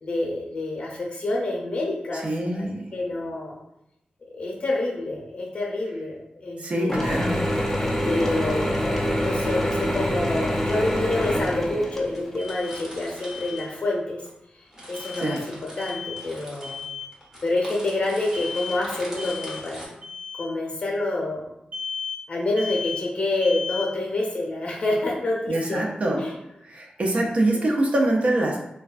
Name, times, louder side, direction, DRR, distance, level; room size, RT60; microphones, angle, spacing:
voice 1, 0.0-2.2 2.5-2.6 2.9-3.6 4.3-7.2 8.0-14.2 14.9-16.8 17.4-19.9 20.4-21.5 22.3-25.8 26.1-26.3 27.2-27.3, left 2 dB, 45° left, -2 dB, 0.7 m, -27 dB
voice 2, 2.1-2.8 6.6-7.4 15.1-15.4 25.5-26.2 26.6-28.6, right 1 dB, 50° right, 0 dB, 0.4 m, -24 dB
Mechanisms / Drill, 6.9-12.4, equal, 10° left, 0.3 m, -25 dB
sound 1, 9.3-9.8 10.6-10.7 11.4-11.5 11.8-11.9 12.1-14.3 14.6-19.9, equal, 20° right, 0.8 m, -43 dB
Alarm, 12.4-12.8 13.2-13.7 14.9-15.4 15.8-16.3 16.6-17.1 18.3-18.8 19.2-19.6 20.0-20.4 21.7-22.2 22.6-23.0 23.4-23.9, left 6 dB, 90° right, 0.9 m, -34 dB
3.2 x 2.2 x 2.4 m, 0.83 s
wide cardioid pair, 160°, 3 cm